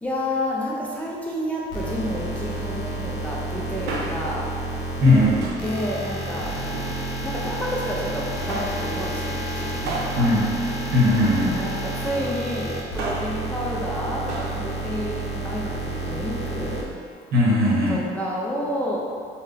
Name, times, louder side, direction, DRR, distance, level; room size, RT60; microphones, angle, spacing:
voice 1, 0.0-4.5 5.6-6.6 7.2-10.3 11.4-16.8 17.9-19.0, equal, 10° left, -5 dB, 0.4 m, -30 dB
sound 1, 1.7-16.8, right 2 dB, 70° left, 0.6 m, -30 dB
Male speech man speaking, 3.9-4.5 5.4-5.8 6.6-7.4 8.5-8.9 9.9-11.5 12.8-13.4 14.3-14.6 14.9-15.0, right 2 dB, 85° right, 0.4 m, -34 dB
voice 2, 5.0-5.4 10.2-10.5 10.9-11.6 17.3-18.0, left 1 dB, 70° right, -7 dB, 1.0 m, -18 dB
2.6 x 2.1 x 3.7 m, 2.2 s
cardioid pair, 110°, 17 cm